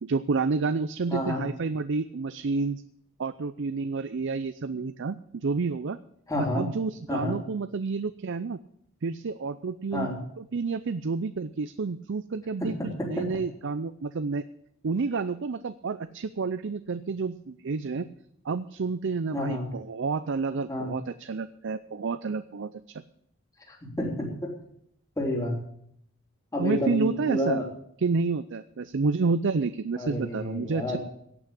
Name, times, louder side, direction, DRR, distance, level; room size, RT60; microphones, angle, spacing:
voice 1, 0.0-2.8 3.2-6.0 6.5-8.6 9.0-10.1 10.4-14.4 14.8-18.1 18.4-23.0 26.6-27.6 28.0-31.0, right 4 dB, 60° right, 12 dB, 0.5 m, -29 dB
voice 2, 1.1-1.4 6.3-6.6 7.1-7.4 9.9-10.2 12.6-13.3 19.3-19.7 20.7-20.9 23.7-24.5 25.2-25.6 26.5-27.7 30.0-31.0, left 1 dB, 15° left, -1 dB, 3.4 m, -30 dB
17.0 x 6.2 x 8.6 m, 0.70 s
head